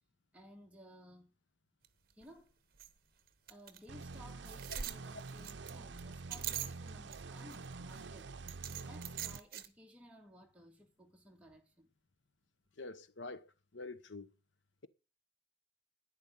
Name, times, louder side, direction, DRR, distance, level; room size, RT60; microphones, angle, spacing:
voice 1, 0.3-1.4 2.1-2.5 3.5-11.9, equal, 5° right, 1.9 m, -58 dB
sound 1, 1.8-1.9 2.2-2.3 2.8-2.9 3.5-3.8 4.1-4.2 4.5-7.2 7.5-8.0 8.5-9.7, right 10 dB, 55° right, 1.0 m, -42 dB
sound 2, 3.9-9.4, right 3 dB, 70° right, 0.6 m, -47 dB
voice 2, 12.8-14.3, left 3 dB, 85° left, 1.1 m, -47 dB
11.0 x 10.0 x 9.6 m
head